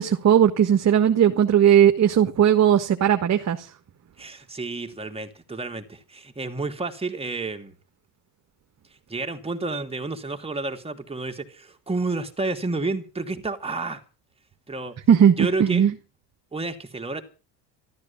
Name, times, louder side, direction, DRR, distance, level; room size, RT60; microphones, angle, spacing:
voice 1, 0.0-3.6 15.1-15.9, right 9 dB, 35° right, 1.6 m, -18 dB
voice 2, 4.2-7.7 9.1-14.0 14.7-14.9 15.4-15.8 16.5-17.2, right 3 dB, 10° right, 2.7 m, -30 dB
13.5 x 13.5 x 7.2 m
supercardioid pair, 105°, 48 cm